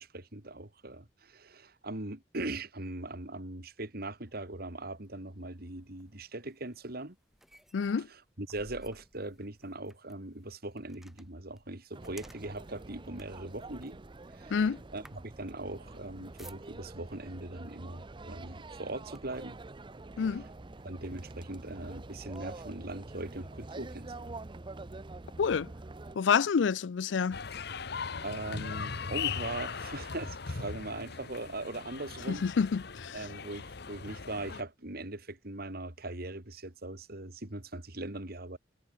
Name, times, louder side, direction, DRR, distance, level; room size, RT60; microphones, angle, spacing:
voice 1, 0.0-7.2 8.4-14.0 14.3-14.6 14.9-19.6 20.8-24.4 28.2-32.4 33.1-38.6, right 2 dB, 55° right, 3.1 m, -40 dB
sound 1, 4.3-17.1 17.9-18.1 18.5-19.6 20.2-20.3 20.7-22.4, equal, ahead, 3.6 m, -59 dB
voice 2, 7.7-8.1 14.5-14.8 20.2-20.5 25.4-25.7 26.2-27.4 32.3-33.3, left 6 dB, 90° left, 0.4 m, -28 dB
sound 2, 11.9-26.2, right 2 dB, 25° right, 0.6 m, -46 dB
sound 3, 27.3-34.6, left 5 dB, 65° left, 1.1 m, -39 dB
head